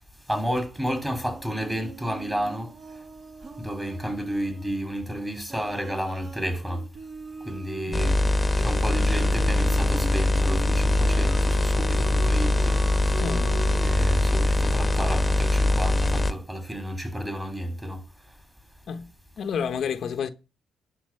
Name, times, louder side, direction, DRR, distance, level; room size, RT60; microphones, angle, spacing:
voice 1, 0.3-2.7 3.6-6.8 7.5-8.1 8.6-11.3 11.6-12.8 13.8-18.0, equal, 10° right, 3.2 m, -31 dB
sound 1, 1.3-5.0 5.5-15.7, right 3 dB, 40° right, 1.9 m, -42 dB
sound 2, 7.9-16.3, left 2 dB, 15° left, 1.3 m, -22 dB
voice 2, 13.2-13.6 18.9-20.3, left 7 dB, 60° left, 0.8 m, -30 dB
11.5 x 4.2 x 7.6 m
cardioid pair, 90°, 0 cm